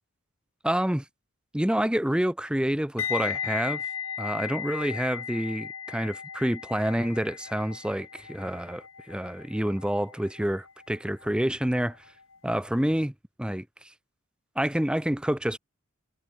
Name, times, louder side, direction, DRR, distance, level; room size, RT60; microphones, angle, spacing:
voice 1, 0.6-1.0 1.5-3.8 4.2-12.0 12.4-13.1 13.4-13.9 14.6-15.6, equal, 5° right, 0.6 m, -28 dB
sound 1, 3.0-11.9 12.2-12.5, left 8 dB, 80° left, 3.8 m, -36 dB
head